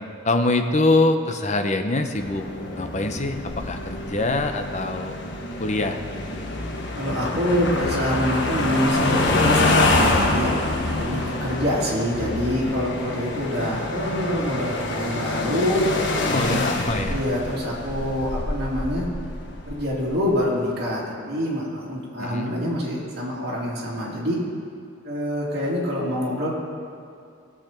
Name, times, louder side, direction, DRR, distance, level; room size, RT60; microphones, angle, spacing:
voice 1, 0.2-2.5 2.7-5.1 5.6-6.0 16.3-17.2 22.2-22.5, left 2 dB, 35° left, 6 dB, 0.7 m, -24 dB
sound 1, 2.2-20.3, left 2 dB, 55° left, 1.1 m, -26 dB
voice 2, 6.9-10.5 10.9-15.8 16.5-16.6 17.1-19.0 19.7-24.4 25.0-26.5, equal, 50° right, -6 dB, 3.0 m, -26 dB
17.5 x 7.5 x 4.5 m, 2.4 s
head